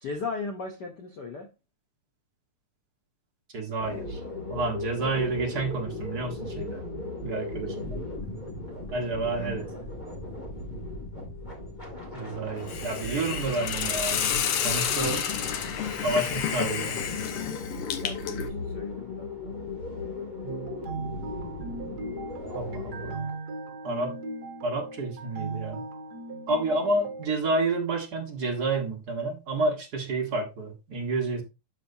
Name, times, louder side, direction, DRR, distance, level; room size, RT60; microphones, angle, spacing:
voice 1, 0.0-1.5 9.4-9.8 18.0-19.5, left 4 dB, 85° left, 0.9 m, -37 dB
voice 2, 3.5-4.2 4.5-6.8 7.2-8.0 8.9-9.7 12.1-14.2 14.6-15.2 16.0-16.9 22.5-23.3 23.8-24.2 24.6-25.8 26.5-31.4, right 2 dB, 45° right, 1.4 m, -29 dB
sound 1, 3.8-23.2, left 2 dB, 15° left, 2.3 m, -37 dB
Hiss, 12.7-18.5, left 8 dB, 65° left, 1.7 m, -30 dB
sound 2, 20.4-27.3, right 3 dB, 75° right, 0.9 m, -38 dB
12.0 x 4.4 x 2.8 m
omnidirectional pair, 3.6 m